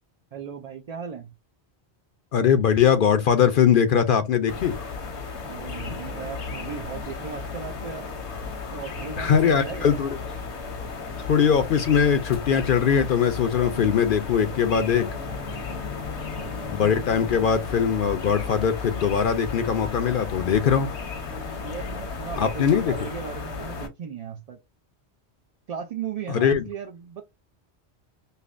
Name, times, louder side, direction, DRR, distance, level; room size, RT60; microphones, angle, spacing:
voice 1, 0.3-1.3 5.4-8.1 8.7-10.0 16.0-16.9 21.6-24.6 25.7-27.2, right 7 dB, 60° right, 0.4 m, -37 dB
voice 2, 2.3-4.8 9.2-10.2 11.2-15.1 16.7-20.9 22.4-22.9 26.3-26.7, left 7 dB, 60° left, 0.6 m, -21 dB
sound 1, 4.5-23.9, left 4 dB, 85° left, 1.2 m, -34 dB
5.4 x 2.0 x 2.4 m
omnidirectional pair, 1.1 m